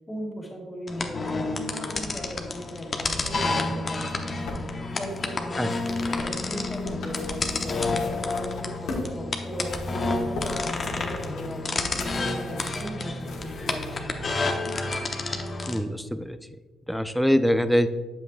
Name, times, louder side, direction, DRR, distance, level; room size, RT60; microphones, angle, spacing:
voice 1, 0.1-14.2, equal, 15° left, -3 dB, 2.3 m, -37 dB
sound 1, 0.9-15.8, left 3 dB, 35° left, 0.8 m, -30 dB
sound 2, 4.0-9.1 9.5-14.0 14.8-14.9, left 2 dB, 85° left, 1.3 m, -39 dB
voice 2, 15.7-16.4 16.9-17.9, equal, ahead, 10 dB, 0.4 m, -23 dB
8.3 x 7.2 x 2.4 m, 1.3 s
cardioid pair, 90°, 0 cm